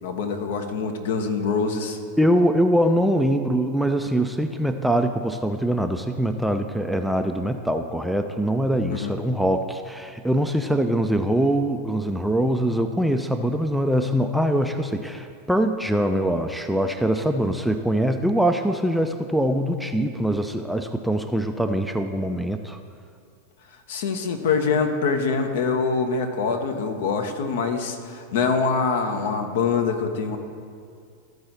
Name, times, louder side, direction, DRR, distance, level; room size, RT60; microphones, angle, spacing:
voice 1, 0.0-2.0 8.9-9.1 23.9-30.4, left 5 dB, 55° left, 6 dB, 0.8 m, -24 dB
voice 2, 2.2-22.8, right 1 dB, ahead, 6 dB, 0.4 m, -23 dB
13.5 x 4.7 x 4.2 m, 2.3 s
figure-of-eight pair, 90°, 0 cm